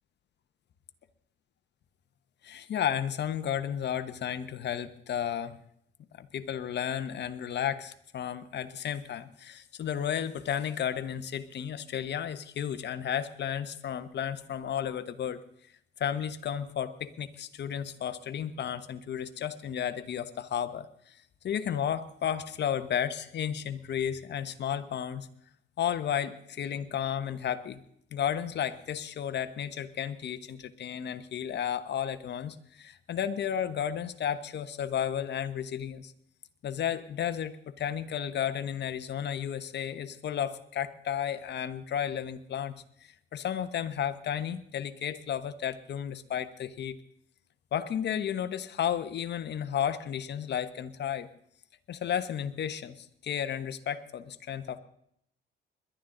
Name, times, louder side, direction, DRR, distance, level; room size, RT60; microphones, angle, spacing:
voice 1, 2.4-5.6 6.2-15.4 16.0-21.2 21.4-25.3 25.8-27.8 28.1-36.1 36.6-42.7 43.0-47.0 47.7-51.3 51.9-54.8, left 9 dB, 60° left, 10 dB, 1.2 m, -33 dB
21.5 x 11.5 x 3.9 m, 0.70 s
cardioid pair, 90°, 20 cm